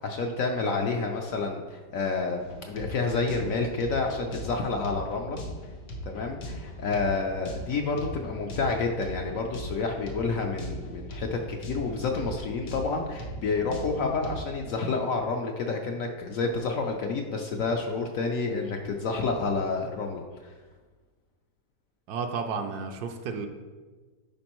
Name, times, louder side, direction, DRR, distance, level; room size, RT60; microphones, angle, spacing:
voice 1, 0.0-2.4 2.7-5.4 6.1-20.5, left 4 dB, 65° left, 2 dB, 0.8 m, -29 dB
sound 1, 2.4-14.4, equal, 85° left, 1.7 m, -39 dB
voice 2, 22.1-23.5, right 5 dB, 70° right, 5 dB, 1.1 m, -32 dB
10.5 x 4.3 x 3.0 m, 1.4 s
omnidirectional pair, 1.8 m